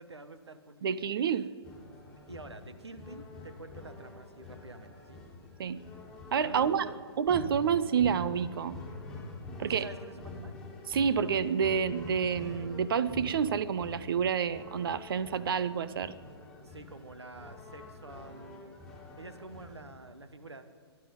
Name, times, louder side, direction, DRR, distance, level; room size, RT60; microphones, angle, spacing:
voice 1, 0.0-1.4 1.8-5.2 6.4-6.9 9.7-10.6 16.6-18.7 19.2-20.7, right 2 dB, 85° right, 10 dB, 1.3 m, -48 dB
voice 2, 0.8-1.5 5.6-5.8 6.3-6.8 7.2-8.8 9.6-9.9 10.9-16.1, right 7 dB, 60° right, 15 dB, 0.7 m, -29 dB
sound 1, 1.6-19.8, left 3 dB, 5° left, 3.0 m, -46 dB
22.5 x 11.5 x 5.3 m, 2.1 s
figure-of-eight pair, 125°, 14 cm